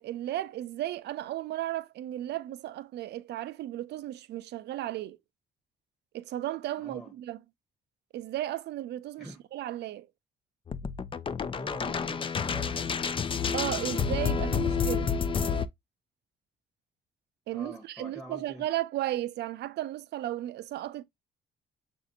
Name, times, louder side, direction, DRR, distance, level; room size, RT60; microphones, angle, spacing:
voice 1, 0.0-5.2 6.1-7.4 8.1-10.1 13.5-15.1 17.5-21.0, right 14 dB, 75° right, 0.5 m, -35 dB
voice 2, 6.8-7.1 9.2-9.4 11.5-13.0 17.5-18.6, right 1 dB, ahead, 1.0 m, -45 dB
sound 1, 10.7-15.7, left 6 dB, 30° left, 0.4 m, -29 dB
6.2 x 2.6 x 2.6 m
cardioid pair, 75°, 18 cm